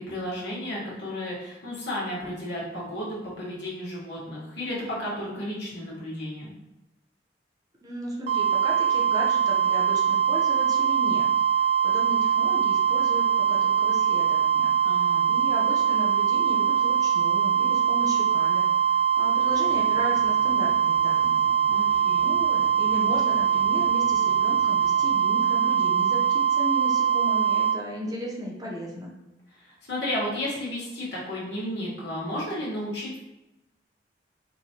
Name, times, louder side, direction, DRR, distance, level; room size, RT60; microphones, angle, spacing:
voice 1, 0.0-6.5 14.8-15.2 21.7-22.3 29.5-33.2, left 1 dB, 75° left, -6 dB, 1.5 m, -33 dB
voice 2, 7.8-11.3 11.5-21.5 22.2-29.1, equal, 20° right, -3 dB, 0.7 m, -35 dB
sound 1, 8.3-27.8, right 8 dB, 35° right, 0.3 m, -22 dB
sound 2, 19.5-25.1, right 1 dB, 55° right, 0.8 m, -50 dB
4.4 x 3.0 x 2.9 m, 0.97 s
head